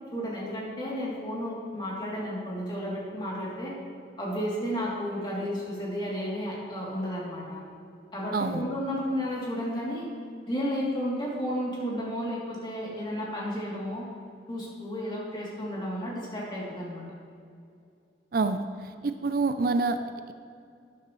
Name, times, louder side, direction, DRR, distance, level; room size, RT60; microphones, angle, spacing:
voice 1, 0.1-3.8 4.2-7.6 8.1-10.1 10.5-14.1 14.5-17.0, equal, 25° left, -6 dB, 2.9 m, -32 dB
voice 2, 8.3-8.7 18.3-20.3, right 3 dB, 55° right, 9 dB, 0.4 m, -28 dB
13.0 x 10.0 x 3.2 m, 2.4 s
head